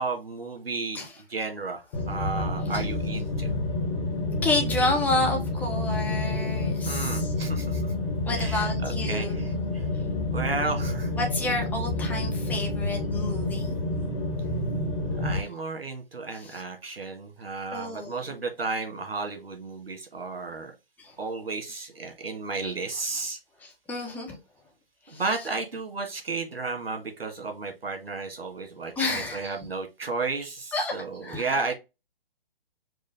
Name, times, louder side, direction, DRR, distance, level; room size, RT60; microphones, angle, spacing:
voice 1, 0.0-1.0 1.3-3.5 5.0-5.1 6.9-7.8 8.3-9.9 10.3-11.1 15.2-20.7 21.2-23.4 25.1-31.7, right 3 dB, 85° right, 1.7 m, -33 dB
sound 1, 1.9-15.4, left 2 dB, 35° left, 1.4 m, -29 dB
voice 2, 4.4-7.3 8.3-9.3 9.9-10.0 11.2-13.8 16.3-16.6 17.7-18.4 21.0-21.1 23.6-24.4 25.1-25.2 29.0-29.4 30.7-31.5, left 2 dB, 5° left, 1.1 m, -30 dB
4.9 x 2.4 x 4.0 m
figure-of-eight pair, 135°, 29 cm